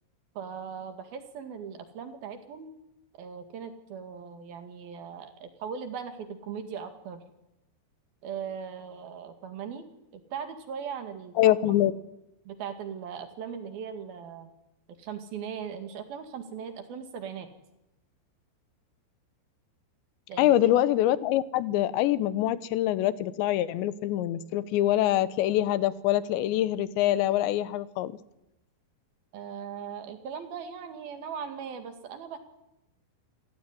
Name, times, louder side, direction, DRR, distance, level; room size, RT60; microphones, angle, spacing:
voice 1, 0.4-2.7 3.2-7.2 8.2-9.9 10.1-11.8 12.5-14.5 15.0-17.5 20.3-20.7 29.3-32.4, right 7 dB, 65° right, 7 dB, 3.6 m, -39 dB
voice 2, 11.4-11.9 20.4-28.1, left 13 dB, 90° left, 15 dB, 3.3 m, -24 dB
27.5 x 15.5 x 9.7 m, 0.92 s
omnidirectional pair, 5.0 m